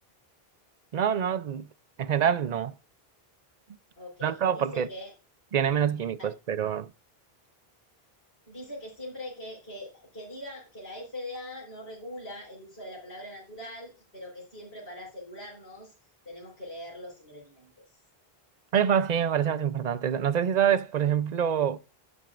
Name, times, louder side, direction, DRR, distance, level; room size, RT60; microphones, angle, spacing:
voice 1, 0.9-1.7 2.0-2.7 4.2-4.9 5.5-6.9 18.7-21.8, right 8 dB, 50° right, 0.6 m, -26 dB
voice 2, 4.0-5.1 6.2-6.3 8.5-15.9 16.2-17.8, left 1 dB, 85° left, 4.6 m, -42 dB
12.0 x 7.5 x 2.5 m
omnidirectional pair, 1.0 m